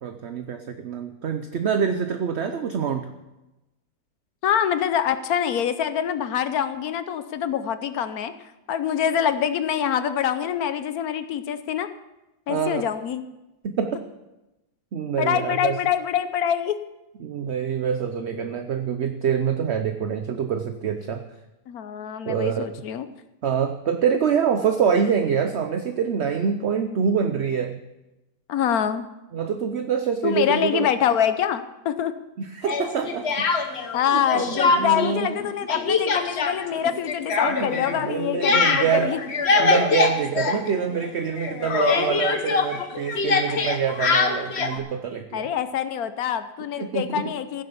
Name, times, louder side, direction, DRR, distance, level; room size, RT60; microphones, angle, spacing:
voice 1, 0.0-3.1 12.5-12.8 13.6-14.0 14.9-15.8 17.2-21.2 22.3-22.6 23.4-27.8 29.3-30.9 32.4-33.5 34.1-35.4 37.5-39.1 39.6-45.5 46.8-47.2, right 7 dB, 55° right, 7 dB, 0.9 m, -25 dB
voice 2, 4.4-8.3 8.7-11.9 12.5-13.2 15.2-16.8 21.7-23.1 28.5-29.1 30.2-32.1 33.9-39.2 45.3-47.6, left 9 dB, 80° left, 11 dB, 1.2 m, -25 dB
Speech, 32.7-34.0 34.3-35.1 35.4-41.1 41.4-44.8, left 4 dB, 50° left, 1.3 m, -23 dB
16.0 x 7.5 x 7.0 m, 1.0 s
omnidirectional pair, 1.6 m